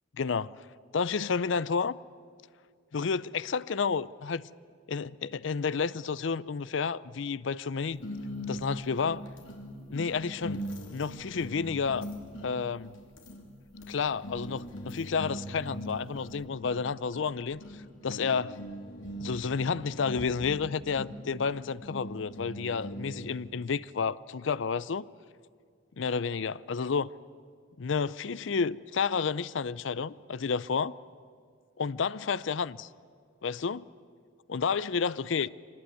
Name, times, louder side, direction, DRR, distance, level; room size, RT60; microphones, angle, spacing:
voice 1, 0.2-0.5 0.9-2.0 2.9-4.5 4.9-8.1 8.4-9.3 9.9-10.6 10.9-12.1 12.4-12.9 13.9-17.6 18.0-18.6 19.2-25.1 26.0-27.1 27.8-30.9 31.8-32.9 33.4-33.9 34.5-35.5, left 5 dB, 70° left, 0.5 m, -30 dB
sound 1, 8.0-23.5, equal, 85° left, 3.1 m, -41 dB
24.5 x 19.5 x 9.4 m
head